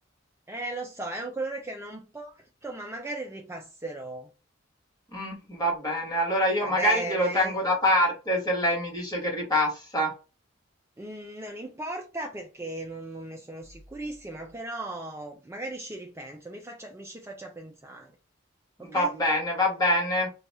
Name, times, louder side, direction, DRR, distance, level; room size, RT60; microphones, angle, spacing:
voice 1, 0.5-4.3 6.6-7.5 11.0-18.1 18.8-19.1, right 2 dB, 15° right, 0.4 m, -37 dB
voice 2, 5.1-10.1 18.8-20.3, left 1 dB, 20° left, 1.3 m, -25 dB
2.7 x 2.3 x 4.0 m
head